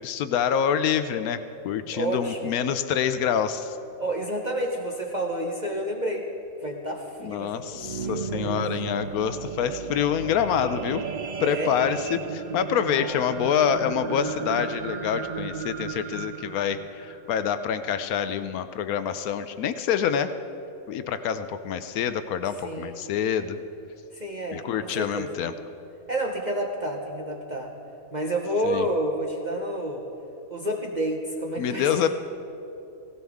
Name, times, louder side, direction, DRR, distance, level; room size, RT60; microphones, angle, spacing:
voice 1, 0.0-3.8 7.2-11.0 11.4-20.3 20.9-23.6 24.5-25.5 28.6-28.9 31.6-32.1, left 8 dB, 80° left, 11 dB, 1.1 m, -26 dB
voice 2, 1.7-2.5 4.0-6.3 6.6-8.7 11.4-11.7 12.9-13.2 22.6-23.0 24.1-25.4 26.1-27.7 28.1-30.0 30.5-32.1, right 1 dB, 35° right, 1 dB, 0.9 m, -30 dB
sound 1, 7.5-18.0 18.6-18.7, right 6 dB, 85° right, 0.3 m, -34 dB
17.5 x 17.0 x 3.6 m, 2.9 s
omnidirectional pair, 1.5 m